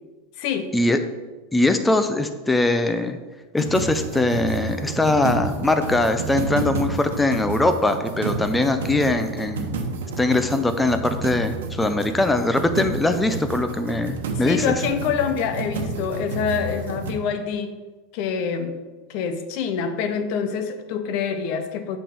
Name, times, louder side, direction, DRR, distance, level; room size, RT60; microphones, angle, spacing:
voice 1, 0.4-0.7 14.4-17.7 18.1-18.8 19.1-22.0, left 7 dB, 55° left, 9 dB, 0.8 m, -26 dB
voice 2, 1.5-3.2 3.5-9.8 10.2-14.7, left 2 dB, 10° left, 8 dB, 0.6 m, -21 dB
sound 1, 3.6-17.1, right 4 dB, 90° right, 1.1 m, -30 dB
8.4 x 5.3 x 3.6 m, 1.3 s
supercardioid pair, 130°, 0 cm